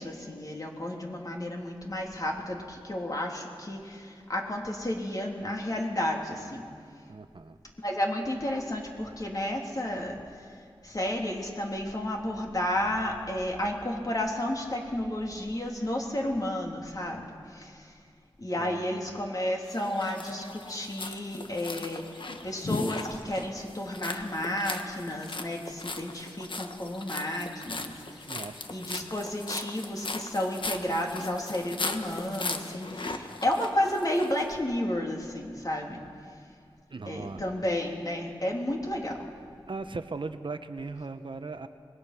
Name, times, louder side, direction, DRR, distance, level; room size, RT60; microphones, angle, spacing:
voice 1, 0.0-6.6 7.8-10.5 10.8-17.9 18.4-28.2 28.7-36.0 37.1-39.3, left 1 dB, 40° left, 0 dB, 3.2 m, -32 dB
voice 2, 7.1-7.6 18.6-19.2 28.2-28.7 36.9-37.4 39.7-41.7, right 3 dB, 60° right, 9 dB, 0.9 m, -38 dB
sound 1, 19.7-34.4, left 2 dB, 60° left, 1.4 m, -38 dB
25.5 x 20.5 x 5.9 m, 2.2 s
wide cardioid pair, 65°, 10 cm